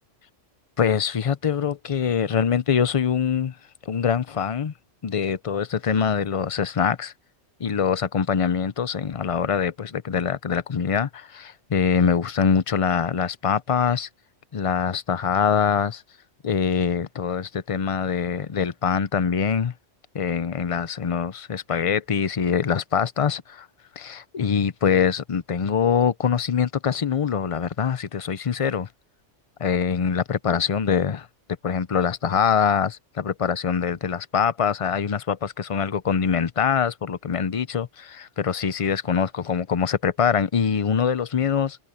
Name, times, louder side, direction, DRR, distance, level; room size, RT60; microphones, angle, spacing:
voice 1, 0.8-3.6 3.9-4.7 5.0-7.1 7.6-14.1 14.5-16.0 16.4-19.7 20.1-23.7 24.0-28.9 29.6-31.3 31.6-41.8, left 7 dB, 40° left, 0.5 m, -24 dB
omnidirectional pair, 1.2 m